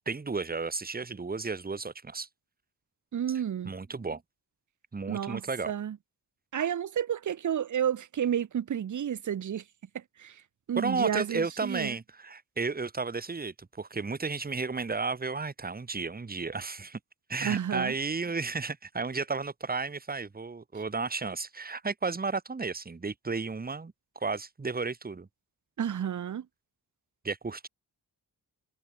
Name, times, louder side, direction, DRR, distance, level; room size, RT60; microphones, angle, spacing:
voice 1, 0.1-2.3 3.6-4.2 4.9-5.7 10.7-17.0 17.3-25.3 27.2-27.7, right 4 dB, 20° right, 0.8 m, -33 dB
voice 2, 3.1-3.7 5.1-6.0 6.5-9.6 10.2-10.4 10.7-12.0 17.4-17.9 25.8-26.4, right 9 dB, 50° right, 0.5 m, -31 dB
cardioid pair, 60°, 41 cm